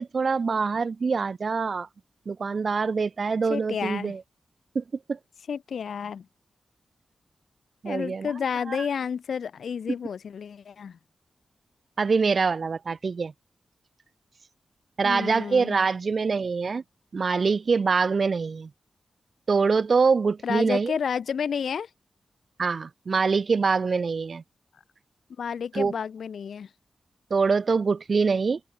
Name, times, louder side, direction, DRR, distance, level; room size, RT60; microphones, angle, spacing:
voice 1, 0.0-1.9 2.3-4.2 4.7-4.8 5.1-5.2 7.8-8.3 8.7-8.9 12.0-13.3 15.0-16.8 17.1-18.7 19.5-20.9 22.6-24.4 25.7-25.9 27.3-28.6, right 5 dB, 45° right, 0.4 m, -24 dB
voice 2, 3.5-4.1 5.5-6.3 7.8-11.0 15.0-15.8 20.4-21.9 25.4-26.7, left 7 dB, 80° left, 2.5 m, -31 dB
open air
wide cardioid pair, 170°, 0 cm